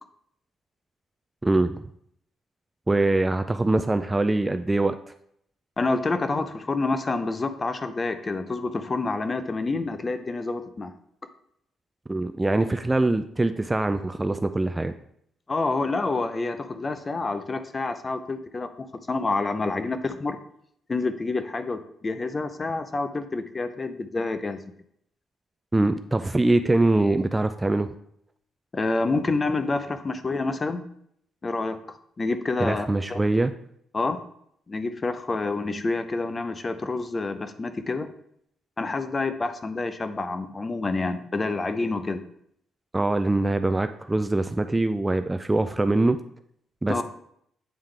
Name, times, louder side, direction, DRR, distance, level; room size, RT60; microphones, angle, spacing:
voice 1, 1.4-1.8 2.9-5.0 12.1-14.9 25.7-27.9 32.6-33.5 42.9-46.2 46.8-47.0, right 2 dB, 15° right, 9 dB, 0.3 m, -23 dB
voice 2, 5.8-10.9 15.5-20.4 20.9-24.6 28.7-30.8 31.4-31.8 32.2-33.2 33.9-34.2 34.7-38.1 38.8-42.2 46.9-47.0, left 3 dB, 30° left, 10 dB, 0.6 m, -28 dB
8.8 x 3.7 x 3.3 m, 0.69 s
cardioid pair, 90°, 0 cm